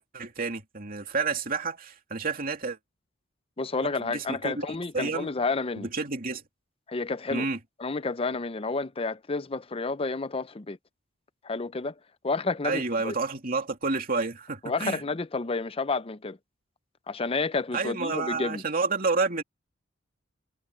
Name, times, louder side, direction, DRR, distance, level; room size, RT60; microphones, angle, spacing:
voice 1, 0.0-2.8 4.0-4.7 4.9-5.3 5.8-6.4 7.3-7.6 12.6-15.0 17.7-19.4, right 4 dB, 45° right, 2.8 m, -30 dB
voice 2, 3.6-5.9 6.9-7.5 7.8-10.8 11.4-11.9 12.2-13.1 14.6-16.4 17.1-18.6, left 3 dB, 30° left, 0.6 m, -30 dB
head